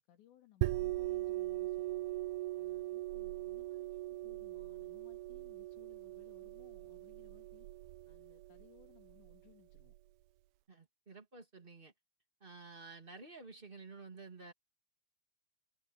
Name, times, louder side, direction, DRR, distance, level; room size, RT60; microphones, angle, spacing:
voice 1, 0.0-2.1 2.5-7.7 8.1-9.9, left 12 dB, 75° left, 5.0 m, -65 dB
sound 1, 0.6-10.0, right 17 dB, 90° right, 2.1 m, -40 dB
voice 2, 10.7-11.9 12.4-14.5, right 3 dB, 15° right, 2.0 m, -52 dB
omnidirectional pair, 5.1 m